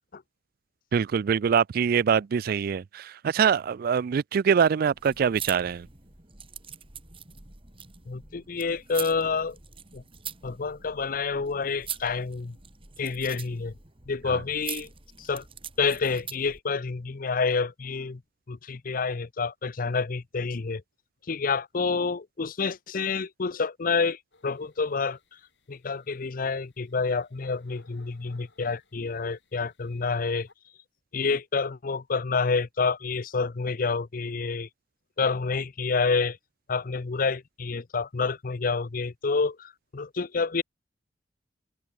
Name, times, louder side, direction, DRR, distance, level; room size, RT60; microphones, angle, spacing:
voice 1, 0.9-5.9 14.3-14.4, right 7 dB, 55° right, 0.3 m, -24 dB
sound 1, 4.9-16.6, right 8 dB, 30° right, 2.5 m, -43 dB
voice 2, 8.1-9.6 9.9-10.0 10.4-12.6 13.0-13.7 14.1-14.9 15.2-15.4 15.8-18.2 18.5-20.8 21.3-25.2 25.7-30.5 31.1-34.7 35.2-36.4 36.7-40.6, left 4 dB, 50° left, 0.6 m, -28 dB
sound 2, 24.3-30.5, left 2 dB, 80° left, 5.1 m, -60 dB
head